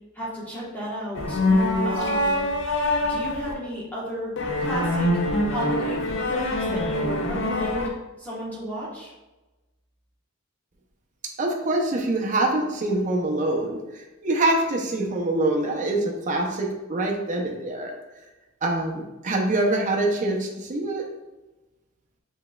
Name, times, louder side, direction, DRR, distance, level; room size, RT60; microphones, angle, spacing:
voice 1, 0.1-1.4 1.8-2.4 3.1-4.3 4.6-5.1 5.5-6.0 6.3-7.9 8.2-9.1, equal, 10° left, -7 dB, 1.1 m, -33 dB
sound 1, 1.2-3.5 4.4-7.9, left 1 dB, 60° left, 0.7 m, -24 dB
voice 2, 11.4-17.9 18.6-21.0, right 2 dB, 35° right, 0 dB, 0.7 m, -25 dB
7.2 x 3.2 x 2.3 m, 1.1 s
head